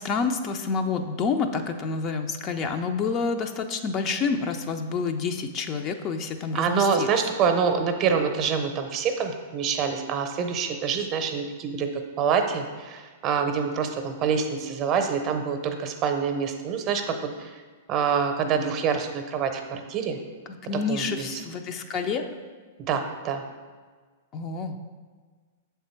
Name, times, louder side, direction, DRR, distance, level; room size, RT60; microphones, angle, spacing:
voice 1, 0.0-7.1 20.6-22.3 24.3-24.8, left 5 dB, 35° left, 6 dB, 0.4 m, -28 dB
voice 2, 6.5-17.6 17.9-20.2 20.9-21.4 22.8-23.4, right 6 dB, 35° right, 6 dB, 0.7 m, -26 dB
6.8 x 3.5 x 4.4 m, 1.5 s
hypercardioid pair, 110°, 0 cm